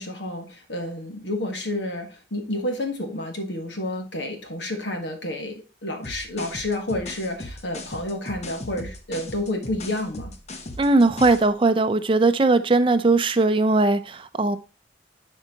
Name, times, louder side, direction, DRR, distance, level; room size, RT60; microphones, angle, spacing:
voice 1, 0.0-10.3, left 1 dB, 85° left, 1.6 m, -30 dB
sound 1, 6.0-11.5, left 1 dB, 40° left, 0.9 m, -37 dB
voice 2, 10.8-14.6, right 3 dB, 30° right, 0.5 m, -19 dB
10.5 x 4.5 x 2.9 m
head